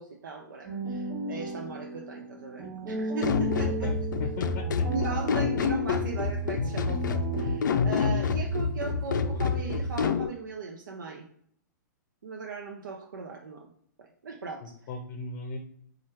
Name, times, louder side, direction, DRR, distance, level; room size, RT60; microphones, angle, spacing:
voice 1, 0.0-3.9 4.9-11.3 12.2-13.7 14.0-14.6, right 4 dB, 85° right, 2 dB, 0.6 m, -38 dB
sound 1, 0.6-7.6, right 2 dB, 30° right, 1.3 m, -35 dB
sound 2, 3.2-10.3, left 5 dB, 80° left, 0.4 m, -28 dB
voice 2, 3.6-4.8 14.6-15.6, left 3 dB, 40° left, 5 dB, 0.7 m, -38 dB
4.4 x 2.4 x 4.4 m, 0.66 s
hypercardioid pair, 130°, 10 cm